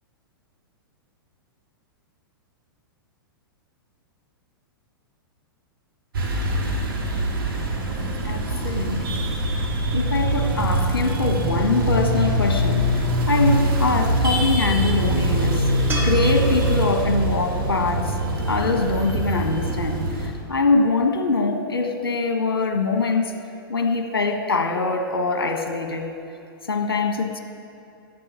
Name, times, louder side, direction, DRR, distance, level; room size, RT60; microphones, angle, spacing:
sound 1, 6.1-20.3, right 1 dB, 70° right, 2.3 m, -23 dB
voice 1, 8.2-9.3 9.9-15.6 16.0-18.1 18.5-20.0 20.5-23.3 23.7-26.1 26.7-27.4, left 3 dB, 75° left, 5 dB, 1.4 m, -23 dB
sound 2, 15.9-19.1 22.4-22.5, right 2 dB, 15° right, 2.1 m, -36 dB
11.5 x 7.9 x 8.5 m, 2.5 s
figure-of-eight pair, 105°, 12 cm